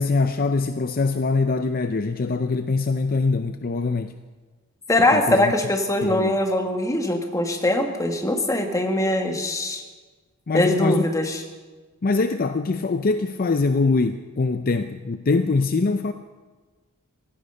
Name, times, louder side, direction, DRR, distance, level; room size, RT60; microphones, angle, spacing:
voice 1, 0.0-4.2 5.1-5.5 6.0-6.4 10.5-11.0 12.0-16.1, left 3 dB, 40° left, 9 dB, 0.5 m, -23 dB
voice 2, 4.9-9.8 10.5-11.4, left 1 dB, 15° left, 4 dB, 1.5 m, -22 dB
17.0 x 15.0 x 5.5 m, 1.4 s
head